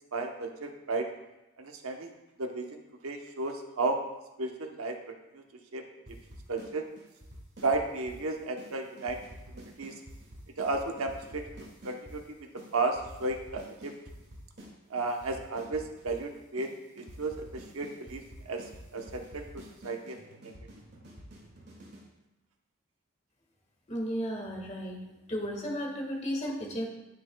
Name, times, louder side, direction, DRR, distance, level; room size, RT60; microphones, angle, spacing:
voice 1, 0.1-1.0 1.6-2.1 2.4-4.0 4.4-4.9 5.3-5.4 5.7-5.8 6.5-6.8 7.6-9.2 9.5-9.9 10.6-12.2 12.7-13.9 14.9-16.7 17.0-17.4 17.7-18.2 18.5-18.6 18.9-19.4 19.8-20.2, right 3 dB, 80° right, 3 dB, 1.0 m, -33 dB
sound 1, 6.1-6.7 7.0-8.2 8.6-8.7 9.0-12.2 12.6-12.7 12.9-14.7 15.0-16.2 16.6-16.7 17.0-22.1, equal, 50° right, 2.1 m, -48 dB
voice 2, 23.9-25.0 25.3-26.9, equal, 30° left, -1 dB, 1.6 m, -34 dB
10.0 x 9.4 x 2.3 m, 0.97 s
head